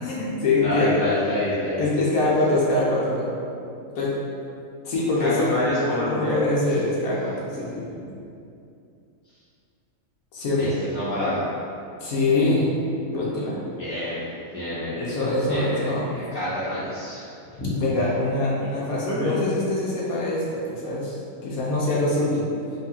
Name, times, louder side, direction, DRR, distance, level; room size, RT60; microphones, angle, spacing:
voice 1, 0.0-1.0 1.8-3.3 3.9-4.1 4.8-5.5 5.9-8.1 10.3-10.7 12.0-12.8 13.1-13.6 15.0-16.1 17.8-22.5, left 2 dB, 85° left, -6 dB, 1.1 m, -24 dB
voice 2, 0.6-1.9 5.2-6.4 10.6-11.4 13.8-14.2 14.5-15.1 15.5-17.7 19.0-19.4, left 1 dB, 35° left, -10 dB, 1.2 m, -27 dB
3.1 x 2.4 x 4.2 m, 2.5 s
omnidirectional pair, 1.5 m